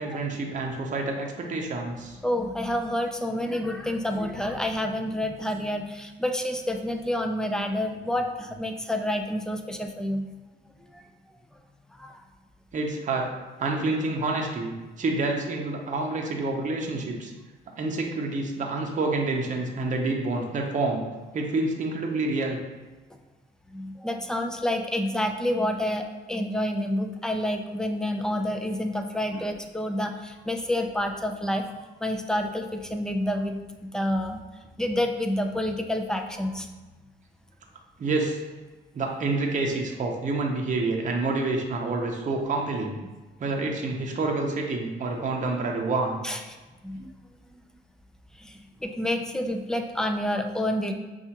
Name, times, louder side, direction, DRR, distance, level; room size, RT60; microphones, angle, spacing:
voice 1, 0.0-2.2 12.7-13.3 13.6-17.3 17.8-21.0 21.3-22.6 29.3-29.4 38.0-38.4 38.9-43.0 43.4-46.2, right 3 dB, 40° right, 1 dB, 0.7 m, -28 dB
voice 2, 2.2-10.2 10.9-11.0 11.9-12.2 23.7-31.7 32.0-34.4 34.8-36.7 46.2-46.4 46.8-47.1 48.3-50.9, left 1 dB, 5° left, 4 dB, 0.4 m, -28 dB
5.5 x 2.4 x 2.8 m, 1.2 s
cardioid pair, 90°, 20 cm